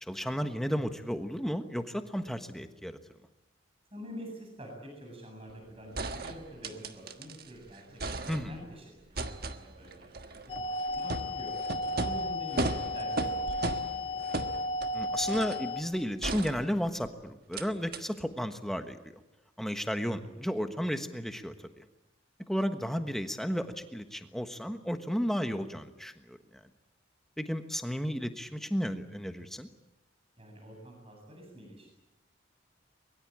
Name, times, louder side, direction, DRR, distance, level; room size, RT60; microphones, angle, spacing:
voice 1, 0.0-3.0 8.3-8.5 14.9-19.0 19.6-21.8 22.5-26.4 27.4-29.7, equal, ahead, 7 dB, 1.3 m, -33 dB
voice 2, 3.9-8.2 8.5-9.2 9.5-10.1 10.5-11.6 12.0-14.2 30.4-31.9, equal, 30° right, 1 dB, 8.0 m, -46 dB
sound 1, 5.5-5.6 6.0-7.5 7.8-8.7 9.2-15.7 16.2-17.1 17.5-17.7 17.9-18.0, right 2 dB, 50° right, 1.4 m, -37 dB
sound 2, 10.5-15.8, left 1 dB, 30° left, 2.0 m, -34 dB
23.5 x 22.5 x 8.7 m, 0.96 s
head